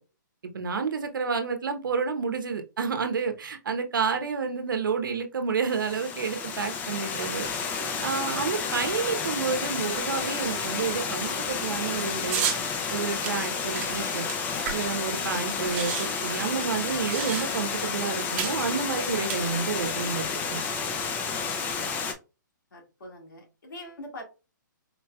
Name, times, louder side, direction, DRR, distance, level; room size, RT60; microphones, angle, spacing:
voice 1, 0.5-7.5 8.0-12.4 12.9-14.3 14.7-20.6, right 5 dB, 80° right, 0.8 m, -30 dB
Water, 5.6-22.1, left 5 dB, 15° left, 0.4 m, -31 dB
sound 1, 12.3-12.6 13.2-15.1 15.3-15.4 15.6-17.8 18.4-18.6 19.2-19.9, right 8 dB, 35° right, 0.9 m, -33 dB
voice 2, 22.7-24.2, left 1 dB, 75° left, 1.8 m, -43 dB
4.5 x 2.7 x 2.2 m
hypercardioid pair, 145°, 11 cm